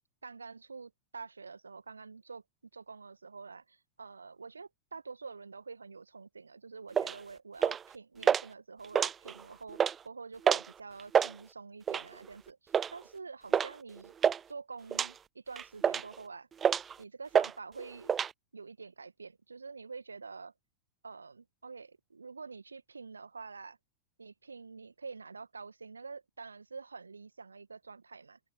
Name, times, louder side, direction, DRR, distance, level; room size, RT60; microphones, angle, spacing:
voice 1, 0.2-2.4 2.7-14.1 14.5-16.5 17.0-18.1 18.5-20.5 21.0-23.8 24.2-28.4, right 4 dB, 75° right, 1.6 m, -47 dB
sound 1, 6.9-7.2 7.6-7.9 8.2-8.4 8.8-9.4 9.7-10.0 10.4-10.7 11.0-11.3 11.9-12.2 12.7-12.9 13.5-13.7 14.0-14.4 14.9-15.1 15.6-16.2 16.6-16.9 17.3-17.5 17.8-18.3, right 7 dB, 20° right, 0.3 m, -27 dB
figure-of-eight pair, 90°, 0 cm